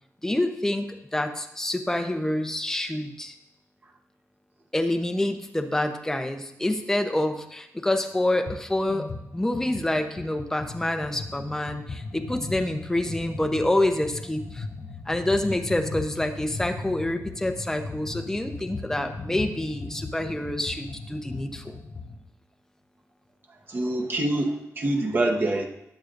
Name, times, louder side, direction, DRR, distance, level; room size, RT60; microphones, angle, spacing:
voice 1, 0.2-3.3 4.7-9.1 9.3-14.6 15.1-21.7, left 1 dB, 10° left, 5 dB, 0.9 m, -27 dB
sound 1, 8.5-8.6 8.9-22.2, left 3 dB, 60° left, 2.2 m, -38 dB
voice 2, 23.7-25.7, right 1 dB, 35° right, 1 dB, 1.4 m, -25 dB
20.0 x 7.3 x 2.6 m, 0.82 s
wide cardioid pair, 130°, 6 cm